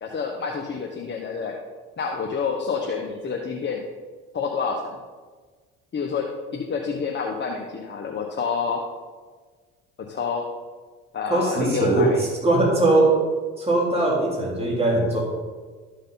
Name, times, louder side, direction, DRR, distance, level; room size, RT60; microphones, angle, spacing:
voice 1, 0.0-1.5 2.0-3.8 4.3-4.8 5.9-8.8 10.1-10.4 11.1-12.2, left 5 dB, 35° left, 1 dB, 1.3 m, -28 dB
voice 2, 11.3-13.2 13.6-15.2, right 2 dB, 20° right, -4 dB, 3.4 m, -20 dB
13.0 x 6.6 x 4.0 m, 1.4 s
supercardioid pair, 80°, 32 cm